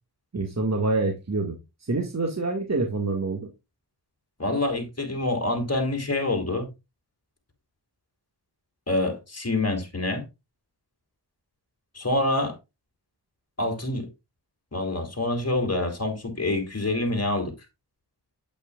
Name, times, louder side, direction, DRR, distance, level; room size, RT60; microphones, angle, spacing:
voice 1, 0.3-1.6 1.9-3.5, right 3 dB, 40° right, 2.0 m, -26 dB
voice 2, 4.4-6.7 8.9-10.2 11.9-12.6 13.6-14.1 14.7-17.5, left 2 dB, 40° left, 3.4 m, -26 dB
8.6 x 8.4 x 2.4 m
cardioid pair, 50°, 41 cm